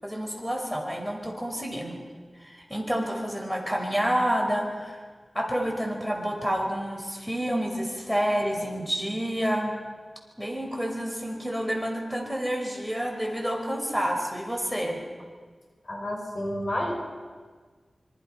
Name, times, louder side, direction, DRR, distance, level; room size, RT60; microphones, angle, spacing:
voice 1, 0.0-2.0 2.4-5.0 5.3-9.7 10.4-15.0, equal, 5° left, 1 dB, 5.2 m, -29 dB
voice 2, 15.8-16.9, left 1 dB, 65° left, 1 dB, 6.0 m, -30 dB
26.0 x 25.5 x 5.7 m, 1.5 s
wide cardioid pair, 55°, 0 cm